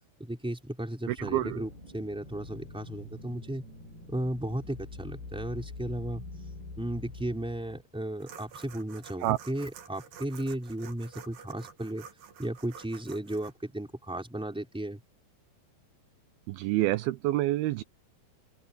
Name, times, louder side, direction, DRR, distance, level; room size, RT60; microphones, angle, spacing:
voice 1, 0.2-3.6 4.1-6.2 6.8-12.1 12.4-15.0, right 1 dB, ahead, 3.7 m, -35 dB
voice 2, 1.1-1.6 9.2-9.4 16.5-17.8, right 16 dB, 80° right, 2.5 m, -28 dB
sound 1, 1.2-7.8, left 3 dB, 75° left, 9.2 m, -45 dB
sound 2, 8.2-13.5, right 7 dB, 65° right, 3.5 m, -49 dB
omnidirectional pair, 4.6 m